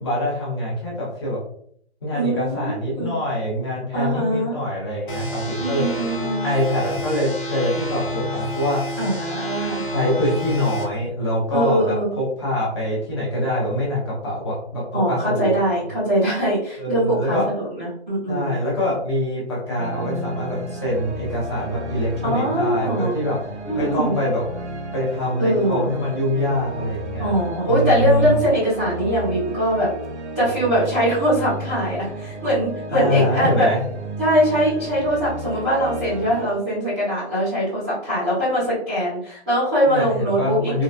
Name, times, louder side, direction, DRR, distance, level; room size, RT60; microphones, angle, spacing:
voice 1, 0.0-1.4 2.0-5.8 6.4-9.0 9.9-15.5 16.8-17.5 18.3-23.4 23.8-24.4 24.9-27.3 27.7-28.4 32.9-33.8 39.9-40.8, left 1 dB, 25° left, -5 dB, 1.0 m, -24 dB
voice 2, 2.1-3.1 3.9-4.5 5.6-6.5 9.0-9.8 11.5-12.1 14.9-18.5 22.2-23.1 23.7-24.1 25.4-25.9 27.2-29.9 30.3-33.7 34.2-40.8, equal, 5° right, -20 dB, 0.7 m, -22 dB
sound 1, 5.1-10.8, left 1 dB, 50° left, 0.8 m, -29 dB
sound 2, 19.8-36.5, right 1 dB, 85° right, 0.8 m, -33 dB
3.9 x 2.3 x 2.5 m, 0.64 s
hypercardioid pair, 165°, 34 cm